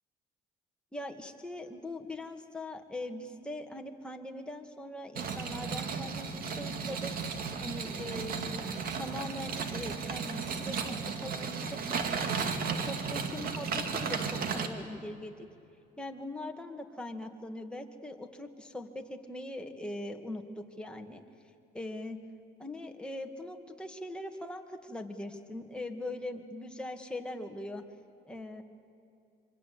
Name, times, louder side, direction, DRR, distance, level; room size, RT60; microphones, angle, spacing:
voice 1, 0.9-7.1 7.6-12.3 12.9-15.5 16.0-21.2 21.7-22.2 22.6-27.8 28.3-28.6, left 1 dB, 5° left, 3 dB, 2.2 m, -41 dB
sound 1, 5.1-14.7, right 5 dB, 60° right, 2.3 m, -34 dB
26.5 x 24.5 x 8.5 m, 2.7 s
cardioid pair, 110°, 17 cm